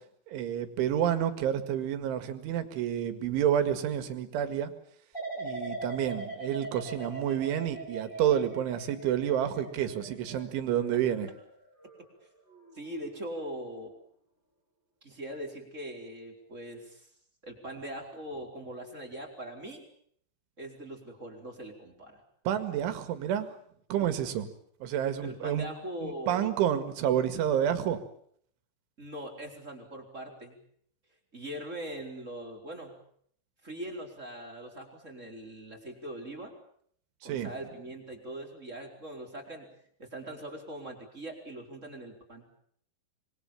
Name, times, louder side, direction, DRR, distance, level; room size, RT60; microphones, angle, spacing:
voice 1, 0.3-4.7 5.4-11.3 22.5-23.5 23.9-24.5 24.8-25.7 26.0-28.0 37.2-37.5, right 10 dB, 90° right, 10 dB, 4.4 m, -29 dB
sound 1, 5.1-12.1 12.5-12.9, right 2 dB, 10° left, 5.4 m, -41 dB
voice 2, 12.7-13.9 15.0-17.1 17.4-19.8 20.6-22.2 25.2-26.5 29.0-30.6 31.3-33.0 33.6-36.5 37.2-39.7 40.0-42.4, right 1 dB, 15° right, 2 dB, 4.2 m, -41 dB
26.0 x 23.5 x 7.3 m, 0.64 s
omnidirectional pair, 5.3 m